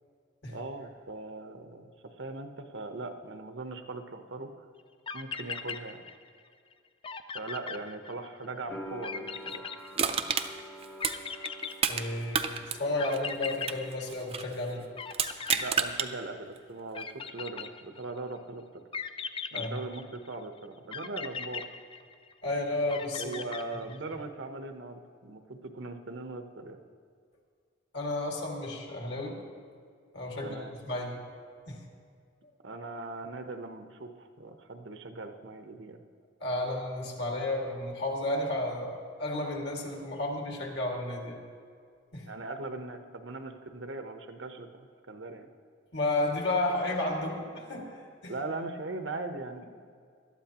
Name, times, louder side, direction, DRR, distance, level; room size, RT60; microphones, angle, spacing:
voice 1, 0.5-4.6 5.1-6.0 7.3-9.6 15.5-18.6 19.5-21.6 23.2-26.8 30.4-30.7 32.6-36.0 42.3-45.5 48.3-49.6, right 2 dB, 70° right, 6 dB, 0.9 m, -40 dB
sound 1, 4.8-4.9 5.1-6.4 6.7-6.8 7.0-8.5 9.0-10.4 11.0-12.3 13.0-14.7 15.0-16.4 16.9-18.2 18.9-20.4 20.9-22.4 22.9-24.1, left 6 dB, 25° left, 0.4 m, -39 dB
sound 2, 8.7-15.5 15.8-16.6, equal, 10° left, 0.8 m, -48 dB
Crushing, 10.0-12.1 12.3-14.5 15.1-16.1 16.6-16.7, right 6 dB, 30° right, 0.5 m, -30 dB
voice 2, 11.9-14.8 19.5-19.7 22.4-23.3 27.9-29.4 30.1-31.2 31.7-31.8 36.4-41.4 42.1-42.3 45.9-48.3, left 2 dB, 60° left, 0 dB, 2.2 m, -32 dB
20.0 x 12.5 x 3.0 m, 2.2 s
head